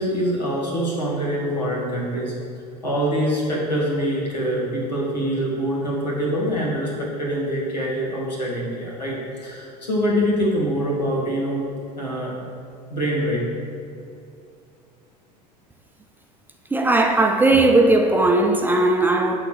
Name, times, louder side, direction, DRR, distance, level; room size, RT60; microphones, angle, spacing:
voice 1, 0.0-2.3 2.8-11.7 12.0-12.4 12.9-13.5, equal, 80° left, 2.0 m, -24 dB
voice 2, 16.7-19.4, right 2 dB, 10° right, 0.6 m, -17 dB
8.6 x 4.0 x 6.7 m
figure-of-eight pair, 70°, 21 cm